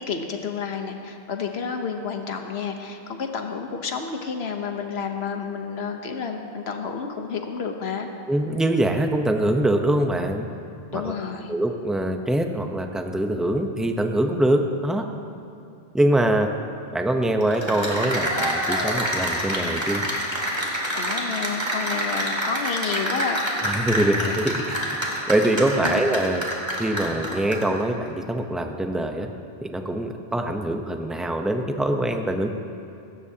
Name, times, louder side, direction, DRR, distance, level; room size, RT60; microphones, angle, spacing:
voice 1, 0.0-8.1 10.9-11.6 20.9-23.4 25.8-26.0, left 5 dB, 80° left, 4 dB, 1.3 m, -30 dB
voice 2, 8.3-10.5 10.9-11.0 11.5-15.0 15.9-16.5 16.9-20.0 23.6-24.8 25.3-26.5 26.8-29.3 29.6-32.5, right 1 dB, ahead, 4 dB, 0.7 m, -23 dB
Cheering / Applause, 17.4-27.8, equal, 25° right, 2.5 m, -27 dB
20.5 x 17.0 x 2.9 m, 2.7 s
omnidirectional pair, 1.0 m